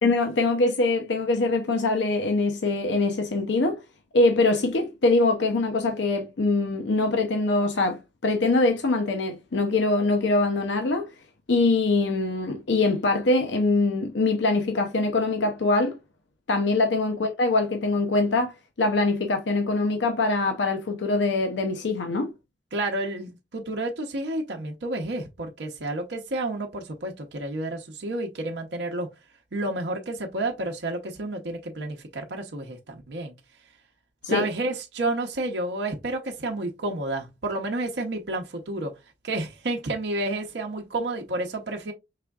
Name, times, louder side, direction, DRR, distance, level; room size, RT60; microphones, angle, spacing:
voice 1, 0.0-3.8 4.1-11.1 11.5-16.0 16.5-22.3 34.2-34.5, left 3 dB, 75° left, 0.6 m, -23 dB
voice 2, 22.7-29.1 29.5-33.3 34.3-38.9 39.2-41.9, right 2 dB, 65° right, 0.7 m, -30 dB
4.9 x 3.4 x 2.3 m
head